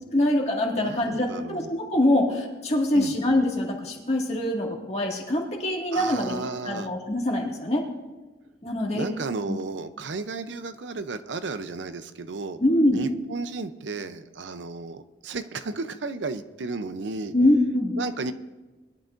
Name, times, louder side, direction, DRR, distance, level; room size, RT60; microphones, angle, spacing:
voice 1, 0.1-6.4 6.6-7.8 8.6-9.1 9.5-9.6 12.6-13.0 17.3-17.9, left 1 dB, 35° left, -1 dB, 2.0 m, -24 dB
voice 2, 0.7-1.7 2.9-3.1 5.9-6.9 8.9-12.6 12.9-17.3 18.0-18.3, right 3 dB, 90° right, 11 dB, 0.6 m, -33 dB
21.0 x 11.5 x 2.6 m, 1.2 s
head